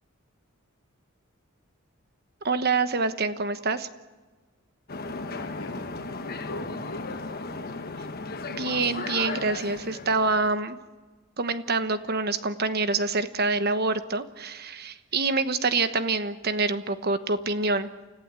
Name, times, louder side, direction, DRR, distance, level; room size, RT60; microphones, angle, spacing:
voice 1, 2.4-3.9 8.5-10.8 11.4-17.9, right 3 dB, 50° right, 11 dB, 1.1 m, -26 dB
sound 1, 4.9-10.5, left 3 dB, 45° left, 1.2 m, -35 dB
voice 2, 5.0-6.0 6.5-7.1 7.4-7.7, left 1 dB, 80° left, 3 dB, 3.3 m, -41 dB
29.5 x 15.0 x 8.3 m, 1.3 s
head